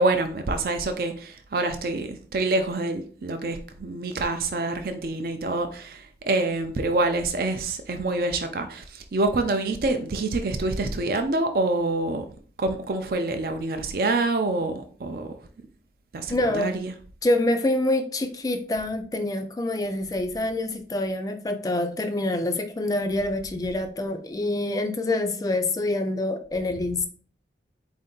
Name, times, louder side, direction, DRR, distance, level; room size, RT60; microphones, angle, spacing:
voice 1, 0.0-12.3 12.6-15.3 16.1-16.9, right 2 dB, 55° right, 0.4 m, -26 dB
voice 2, 16.3-16.7 17.2-27.1, left 2 dB, 20° left, 0.3 m, -26 dB
4.3 x 2.6 x 3.8 m
head